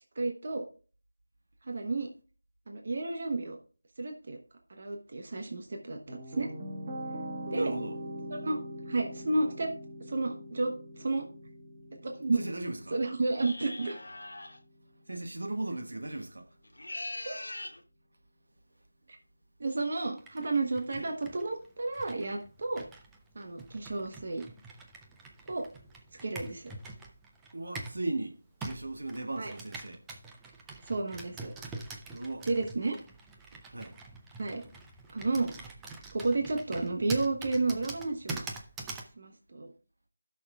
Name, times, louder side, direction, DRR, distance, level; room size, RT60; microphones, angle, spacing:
voice 1, 0.1-0.7 1.7-2.1 2.7-3.6 4.0-4.4 4.7-6.5 7.5-7.7 8.3-8.6 8.9-9.7 10.1-11.3 12.0-12.4 12.9-14.0 17.2-17.4 19.6-22.8 23.3-24.4 25.5-25.6 26.2-26.7 29.4-29.5 30.8-31.5 32.4-33.0 34.4-34.6 35.1-35.5 36.1-38.4 39.2-39.7, right 3 dB, 45° right, 1.1 m, -31 dB
sound 1, 5.7-14.8, equal, 30° right, 1.4 m, -43 dB
voice 2, 7.5-8.0 12.3-13.0 15.1-16.5 21.0-21.1 27.5-28.3 28.6-30.0 32.1-32.5 33.7-33.9, right 2 dB, 80° right, 1.5 m, -36 dB
sound 2, 13.3-14.6 16.6-17.8, left 1 dB, 85° left, 1.3 m, -41 dB
Computer keyboard, 20.2-28.0 28.6-39.1, right 3 dB, 5° right, 0.5 m, -45 dB
15.5 x 6.3 x 2.4 m
figure-of-eight pair, 170°, 0 cm